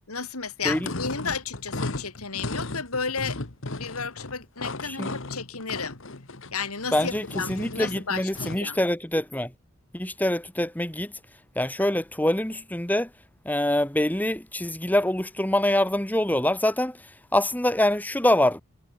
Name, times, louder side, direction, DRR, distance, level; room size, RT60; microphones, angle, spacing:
voice 1, 0.1-3.4 3.7-6.0 6.5-8.8, left 5 dB, 85° left, 3.6 m, -33 dB
sound 1, 0.6-8.7, left 2 dB, 60° left, 1.6 m, -35 dB
voice 2, 6.9-9.5 9.9-11.1 11.5-13.1 13.4-17.0 17.3-18.6, left 1 dB, 5° left, 1.4 m, -25 dB
head